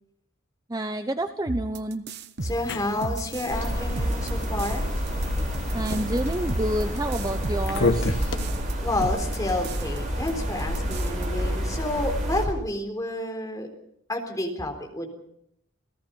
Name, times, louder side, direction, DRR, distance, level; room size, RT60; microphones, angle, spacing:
voice 1, 0.7-2.0 5.7-8.1, right 1 dB, 20° right, 8 dB, 0.9 m, -29 dB
sound 1, 1.5-3.7 4.0-4.8 5.1-8.7 9.0-10.0 10.3-10.4 10.6-11.3, right 2 dB, 55° right, 1.1 m, -34 dB
sound 2, 2.4-8.4, left 3 dB, 60° left, 1.5 m, -33 dB
voice 2, 2.4-4.9 8.8-13.7 14.1-15.1, left 1 dB, 15° left, 3 dB, 4.0 m, -30 dB
sound 3, 3.5-12.5, equal, 40° right, 5.7 m, -29 dB
28.5 x 18.0 x 5.5 m, 0.75 s
head